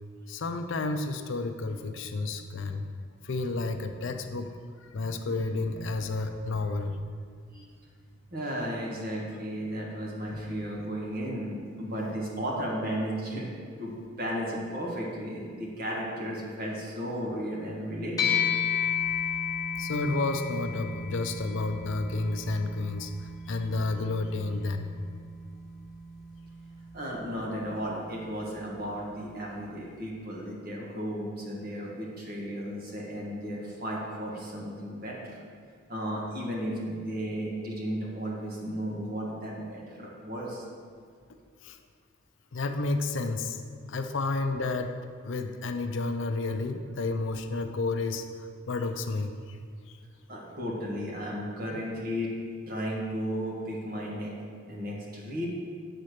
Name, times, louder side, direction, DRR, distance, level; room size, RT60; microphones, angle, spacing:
voice 1, 0.3-2.9 3.2-4.5 4.8-7.0 10.3-10.9 19.8-23.1 23.5-25.0 41.6-41.8 42.5-43.6 43.9-44.9 45.2-49.6, left 3 dB, 60° left, 6 dB, 0.5 m, -31 dB
voice 2, 8.3-13.5 13.8-18.5 26.9-35.4 35.9-40.6 50.3-52.3 52.7-54.3 54.7-55.5, equal, 45° right, -3 dB, 1.5 m, -34 dB
sound 1, 18.2-27.8, left 6 dB, 15° left, 0.9 m, -33 dB
7.9 x 4.2 x 6.5 m, 2.1 s
head